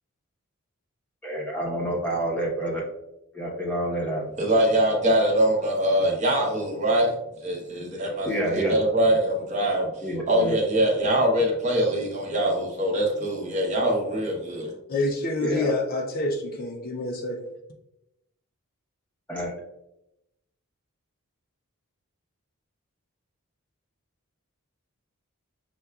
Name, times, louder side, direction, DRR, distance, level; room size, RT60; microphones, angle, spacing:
voice 1, 1.2-2.8 3.3-4.2 8.2-8.8 10.0-10.6 15.4-15.7 19.3-19.5, right 1 dB, 5° left, 0.8 m, -28 dB
voice 2, 4.4-7.1 7.4-8.3 8.5-9.9 10.3-14.7, right 1 dB, 30° right, 0.8 m, -23 dB
voice 3, 14.9-17.4, left 2 dB, 40° left, 0.4 m, -27 dB
6.7 x 2.3 x 2.3 m
head